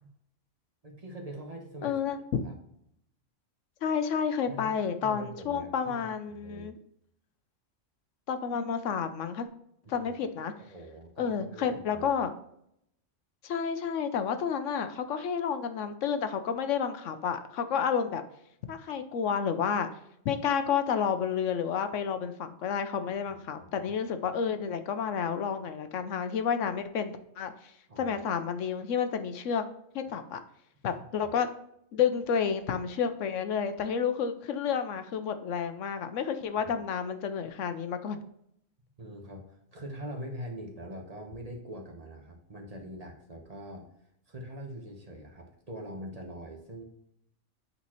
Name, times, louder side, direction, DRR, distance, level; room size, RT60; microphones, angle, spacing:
voice 1, 0.8-2.1 2.4-2.5 4.5-6.1 6.4-6.7 9.9-10.1 10.6-12.2 23.3-23.9 27.9-28.1 31.2-31.3 36.6-36.7 39.0-43.9 44.3-46.8, equal, 30° right, 1 dB, 1.1 m, -43 dB
voice 2, 1.8-2.4 3.8-6.7 8.3-9.5 9.9-10.5 11.2-12.3 13.4-18.2 18.7-19.9 20.2-27.5 28.0-29.6 29.9-30.4 30.8-31.5 31.9-38.2, left 7 dB, 80° left, 9 dB, 1.0 m, -30 dB
8.1 x 4.1 x 3.0 m, 0.74 s
omnidirectional pair, 1.3 m